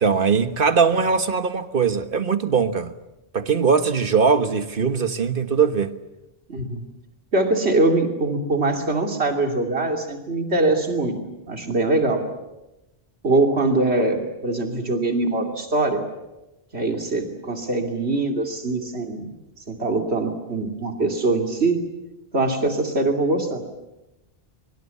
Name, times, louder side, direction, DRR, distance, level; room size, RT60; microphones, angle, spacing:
voice 1, 0.0-2.9 3.3-5.9, right 5 dB, 55° right, 1.5 m, -20 dB
voice 2, 6.5-6.8 7.3-11.2 11.5-12.2 13.2-16.0 16.7-19.3 19.7-21.8 22.3-23.6, right 2 dB, 85° right, 3.1 m, -22 dB
23.0 x 23.0 x 8.4 m
omnidirectional pair, 1.1 m